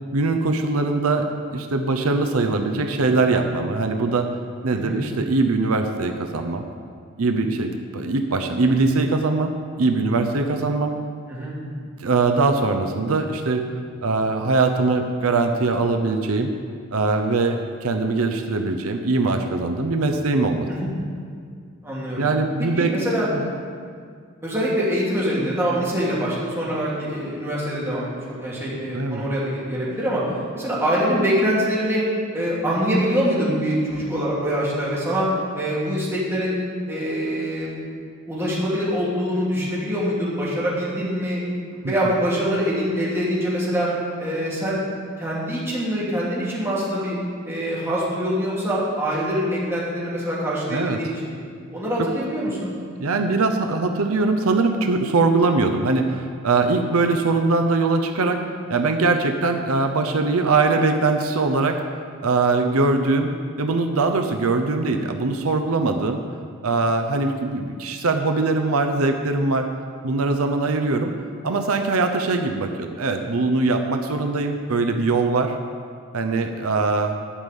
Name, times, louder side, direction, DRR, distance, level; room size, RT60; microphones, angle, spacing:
voice 1, 0.1-4.3 4.6-6.6 7.2-9.5 9.8-10.9 12.0-13.6 14.0-16.5 16.9-20.7 22.2-22.9 23.4-23.5 28.9-29.2 41.8-41.9 50.7-51.0 52.0-52.1 53.0-58.4 58.7-61.8 62.2-63.3 63.6-66.2 66.6-69.7 70.0-71.1 71.4-75.6 76.1-77.2, right 3 dB, 85° right, 5 dB, 0.7 m, -21 dB
voice 2, 21.8-22.3 22.7-23.3 24.4-30.2 30.5-32.0 32.3-35.3 35.5-36.6 36.9-37.8 38.3-41.4 41.7-43.9 44.2-44.8 45.2-47.2 47.4-51.4 51.7-52.7, equal, 10° right, -7 dB, 2.8 m, -24 dB
11.5 x 5.4 x 8.4 m, 2.1 s
head